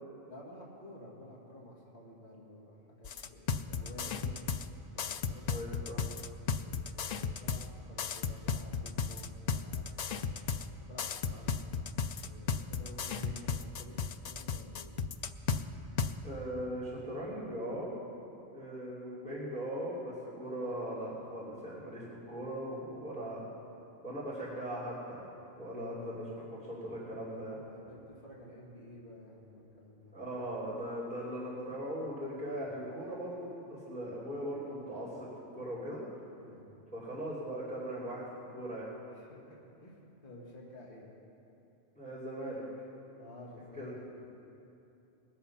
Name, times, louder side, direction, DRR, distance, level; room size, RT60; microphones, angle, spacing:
voice 1, 0.3-4.4 4.9-5.5 6.6-11.6 12.2-15.0 25.7-25.9 27.7-30.1 32.4-32.6 36.4-36.8 39.1-41.1 43.2-44.2, left 1 dB, 45° left, -5 dB, 2.3 m, -52 dB
sound 1, 3.0-4.7 5.0-7.7 8.0-10.7 11.0-15.6 16.0-16.1, left 6 dB, 75° left, 0.4 m, -34 dB
voice 2, 5.4-6.0 13.0-13.4 16.2-17.9 18.5-23.4 24.0-25.3 25.6-27.6 30.1-35.3 35.5-36.0 36.9-38.9 42.0-42.6 43.8-43.9, equal, 5° left, -10 dB, 2.9 m, -39 dB
21.0 x 7.7 x 5.7 m, 2.8 s
omnidirectional pair, 1.3 m